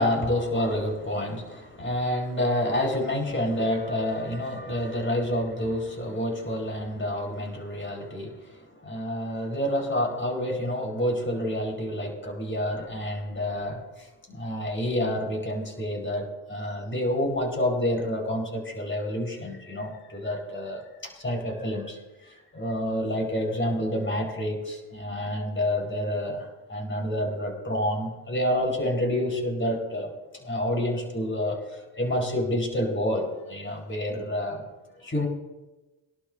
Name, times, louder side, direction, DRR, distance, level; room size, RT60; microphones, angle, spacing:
voice 1, 0.0-34.7 35.0-35.3, left 1 dB, 25° left, 0 dB, 4.7 m, -28 dB
23.0 x 11.5 x 2.7 m, 1.1 s
cardioid pair, 80°, 47 cm